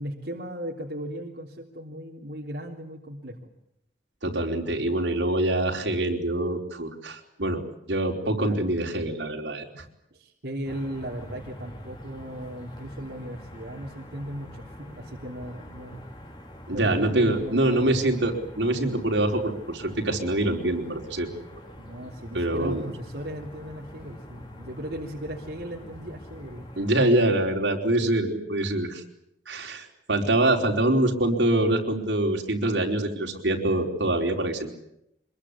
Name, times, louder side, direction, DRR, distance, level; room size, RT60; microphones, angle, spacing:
voice 1, 0.0-3.4 8.4-8.6 9.7-9.8 10.1-16.1 16.7-18.5 21.8-26.7, equal, 65° right, -1 dB, 3.2 m, -37 dB
voice 2, 4.2-7.6 7.9-9.6 16.7-21.6 22.3-22.8 26.8-29.0 29.5-34.7, right 1 dB, 85° right, 1 dB, 4.7 m, -25 dB
sound 1, 10.6-26.9, equal, 25° left, 3.8 m, -45 dB
25.5 x 22.0 x 8.5 m, 0.79 s
head